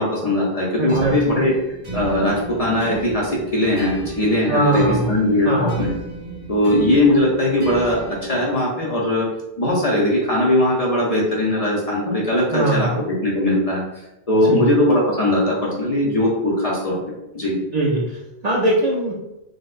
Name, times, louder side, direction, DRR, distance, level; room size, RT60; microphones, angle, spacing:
voice 1, 0.0-1.5 1.9-5.9 6.5-9.3 9.6-13.8 14.3-17.0 17.3-17.6, left 1 dB, 45° left, -4 dB, 0.5 m, -20 dB
voice 2, 0.8-1.4 4.5-5.1 5.5-5.8 12.5-13.0 14.5-14.7 17.7-18.0 18.4-19.1, right 2 dB, 55° right, -4 dB, 0.5 m, -20 dB
sound 1, 0.9-8.6, right 3 dB, 30° right, 1.6 m, -34 dB
3.9 x 2.0 x 2.4 m, 0.92 s
omnidirectional pair, 1.1 m